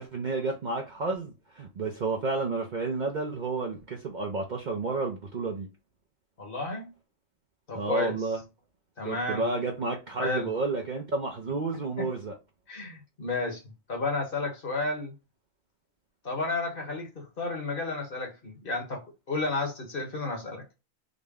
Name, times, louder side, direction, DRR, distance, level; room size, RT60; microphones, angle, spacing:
voice 1, 0.0-5.7 7.7-8.4 9.0-12.3, right 3 dB, 50° right, 0.6 m, -31 dB
voice 2, 6.4-6.9 7.7-8.1 9.0-9.4 10.2-10.5 12.0-12.1 12.7-13.6 13.9-15.1 16.2-19.0 19.3-20.6, left 3 dB, 45° left, 1.3 m, -32 dB
3.9 x 2.1 x 3.4 m
omnidirectional pair, 1.4 m